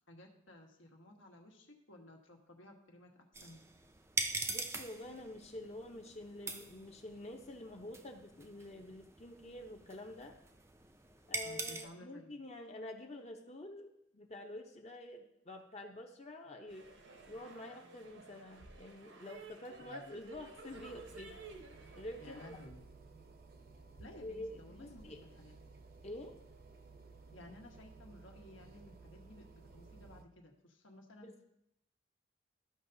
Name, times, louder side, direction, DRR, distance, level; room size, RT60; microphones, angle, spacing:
voice 1, 0.1-3.1 3.4-3.6 11.4-12.4 19.8-20.0 22.2-22.8 24.0-25.8 27.3-31.3, left 1 dB, 80° left, 1 dB, 1.4 m, -56 dB
sound 1, 3.3-11.9, right 3 dB, 15° right, 0.4 m, -43 dB
voice 2, 4.5-10.4 11.3-16.9 17.3-21.4 22.0-22.6 24.2-25.2 26.0-26.3 31.2-31.4, left 1 dB, 35° left, 2 dB, 0.7 m, -48 dB
sound 2, 16.7-22.7, right 3 dB, 75° right, 1.0 m, -53 dB
sound 3, 20.7-30.2, right 3 dB, 50° right, 0.7 m, -57 dB
13.5 x 5.6 x 2.7 m, 0.80 s
head